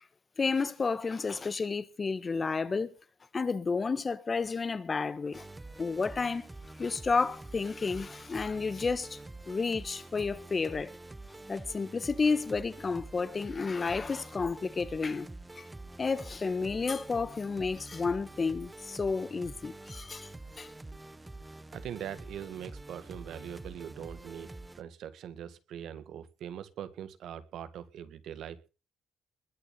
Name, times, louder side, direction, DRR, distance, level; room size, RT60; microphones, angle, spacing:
voice 1, 0.4-2.9 3.3-5.5 5.8-6.5 6.8-9.2 9.5-10.9 11.5-15.3 15.6-15.7 16.0-20.3 20.6-20.7, left 4 dB, 35° left, 1.5 m, -31 dB
sound 1, 5.3-24.8, right 2 dB, 15° right, 1.2 m, -47 dB
voice 2, 21.7-24.5 24.7-28.7, right 9 dB, 75° right, 2.0 m, -42 dB
21.0 x 7.3 x 7.6 m
cardioid pair, 90°, 0 cm